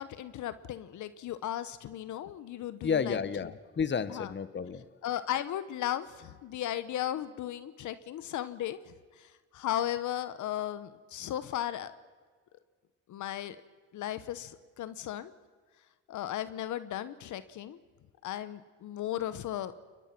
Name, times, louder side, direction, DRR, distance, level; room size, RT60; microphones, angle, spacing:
voice 1, 0.0-3.2 4.1-4.3 5.0-8.8 9.2-11.9 13.1-13.6 13.9-15.3 16.1-17.8 18.2-19.7, left 12 dB, 75° left, 14 dB, 1.1 m, -36 dB
voice 2, 2.8-4.8, left 6 dB, 35° left, 14 dB, 1.3 m, -31 dB
29.5 x 22.0 x 6.0 m, 1.5 s
cardioid pair, 90°, 30 cm